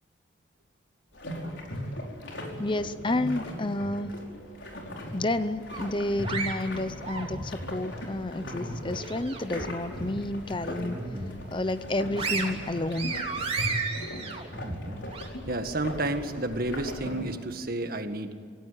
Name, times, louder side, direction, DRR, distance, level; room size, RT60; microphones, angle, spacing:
sound 1, 1.1-17.3, equal, 70° left, 5.1 m, -39 dB
voice 1, 2.6-4.2 5.1-11.0 11.5-13.2, left 1 dB, 25° left, 12 dB, 0.7 m, -30 dB
sound 2, 5.6-13.4, equal, 5° right, 5.3 m, -51 dB
sound 3, 5.7-7.7 8.2-9.6 10.0-10.2 10.6-11.4 11.8-15.3, right 4 dB, 30° right, 3.4 m, -34 dB
voice 2, 15.5-18.3, right 2 dB, 50° right, 7 dB, 1.9 m, -31 dB
27.0 x 17.0 x 9.3 m, 2.2 s
head